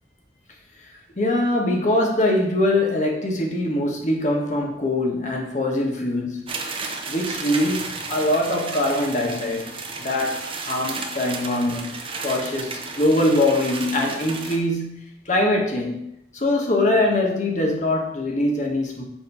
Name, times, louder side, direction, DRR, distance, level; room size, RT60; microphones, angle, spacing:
voice 1, 1.2-6.5 7.1-9.7 10.0-16.1 16.3-19.0, left 1 dB, 45° left, 1 dB, 1.3 m, -23 dB
sound 1, 6.5-14.6, right 4 dB, 30° right, 0.7 m, -33 dB
7.2 x 3.0 x 5.4 m, 0.77 s
head